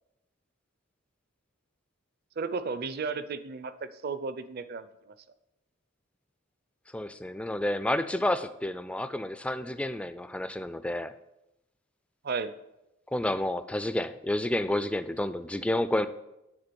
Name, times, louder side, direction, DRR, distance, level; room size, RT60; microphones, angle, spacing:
voice 1, 2.4-4.9 12.2-12.5, right 4 dB, 50° right, 12 dB, 0.5 m, -34 dB
voice 2, 6.9-11.1 13.1-16.1, left 1 dB, 5° left, 11 dB, 0.3 m, -30 dB
9.8 x 3.7 x 6.8 m, 0.90 s
head